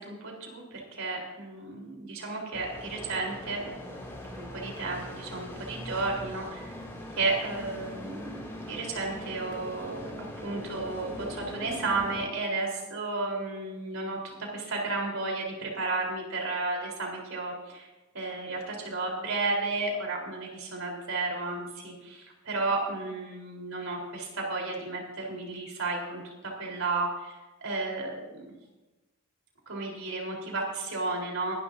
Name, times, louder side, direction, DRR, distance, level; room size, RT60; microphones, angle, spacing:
voice 1, 0.0-3.6 4.3-6.7 7.1-10.1 10.4-17.9 18.1-27.4 27.6-28.5 29.7-31.5, right 3 dB, 75° right, -1 dB, 4.1 m, -33 dB
sound 1, 2.5-12.3, left 1 dB, 15° left, 2.7 m, -41 dB
22.5 x 11.5 x 2.7 m, 1.1 s
head